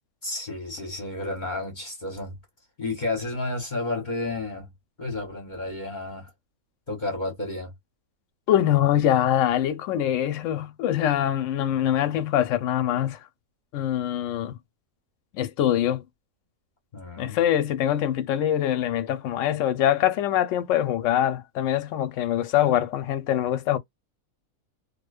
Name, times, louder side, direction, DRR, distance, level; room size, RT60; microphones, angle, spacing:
voice 1, 0.2-2.4 2.8-4.7 5.0-6.3 6.9-7.7 16.9-17.4, left 2 dB, 40° left, 0.8 m, -31 dB
voice 2, 8.5-13.2 13.7-14.6 15.3-16.0 17.2-23.8, left 11 dB, 70° left, 0.9 m, -24 dB
2.6 x 2.1 x 2.3 m
omnidirectional pair, 1.5 m